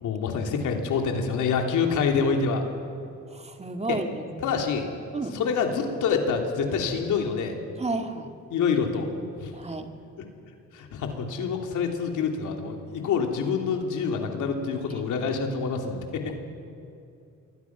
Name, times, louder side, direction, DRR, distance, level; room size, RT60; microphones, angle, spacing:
voice 1, 0.0-2.7 3.8-4.0 4.4-4.9 5.3-7.6 8.5-9.1 9.4-9.5 10.7-16.0, left 5 dB, 80° left, 3 dB, 3.2 m, -26 dB
voice 2, 3.3-4.5 5.1-5.4 7.8-8.3 9.5-9.9, right 3 dB, 20° right, 5 dB, 2.1 m, -32 dB
26.5 x 23.0 x 6.1 m, 2.6 s
cardioid pair, 90°, 30 cm